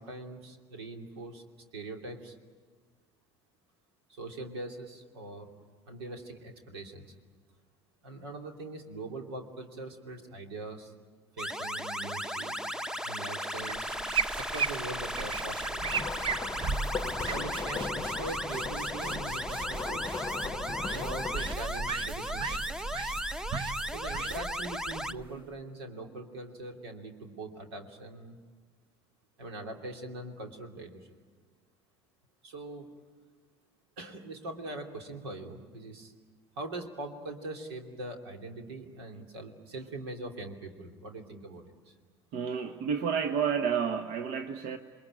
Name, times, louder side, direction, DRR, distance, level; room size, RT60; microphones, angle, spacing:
voice 1, 0.0-1.4 1.7-2.4 4.1-5.5 5.9-7.1 8.0-10.9 11.4-12.6 13.0-13.9 14.4-15.9 17.3-20.1 20.4-22.9 23.8-28.4 29.4-31.2 32.4-32.9 34.0-36.1 36.6-41.9, right 2 dB, 85° right, 3 dB, 2.9 m, -42 dB
sound 1, 11.4-25.1, equal, 5° right, 0.9 m, -36 dB
sound 2, 13.6-25.6, right 5 dB, 40° right, 1.0 m, -37 dB
sound 3, 15.8-21.6, left 6 dB, 25° left, 0.8 m, -38 dB
voice 2, 42.3-44.8, right 7 dB, 60° right, 7 dB, 1.3 m, -30 dB
28.0 x 22.0 x 9.0 m, 1.5 s
hypercardioid pair, 70°, 13 cm